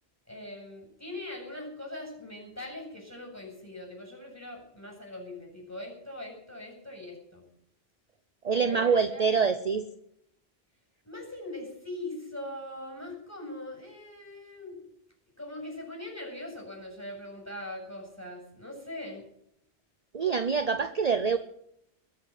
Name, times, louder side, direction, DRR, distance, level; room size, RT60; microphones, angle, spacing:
voice 1, 0.3-7.5 8.5-9.2 11.0-14.9 15.4-19.2, left 1 dB, 15° left, 1 dB, 7.6 m, -41 dB
voice 2, 8.4-9.9 20.1-21.4, right 5 dB, 40° right, 10 dB, 0.9 m, -25 dB
22.0 x 8.1 x 7.7 m, 0.74 s
omnidirectional pair, 1.1 m